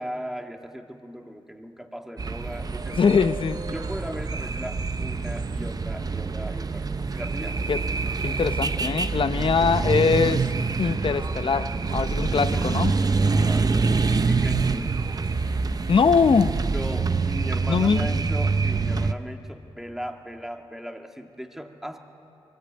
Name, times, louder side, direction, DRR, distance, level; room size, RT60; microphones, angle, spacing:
voice 1, 0.0-3.3 3.7-7.6 12.5-15.2 15.4-15.6 16.7-22.0, equal, 5° right, 4 dB, 1.9 m, -38 dB
sound 1, 2.2-19.1, right 4 dB, 40° right, 0.8 m, -26 dB
voice 2, 2.9-3.6 7.7-7.8 8.2-10.5 10.8-12.9 15.9-16.6 17.7-18.2, left 5 dB, 60° left, 11 dB, 0.8 m, -22 dB
22.5 x 20.0 x 8.7 m, 2.7 s
cardioid pair, 65°, 10 cm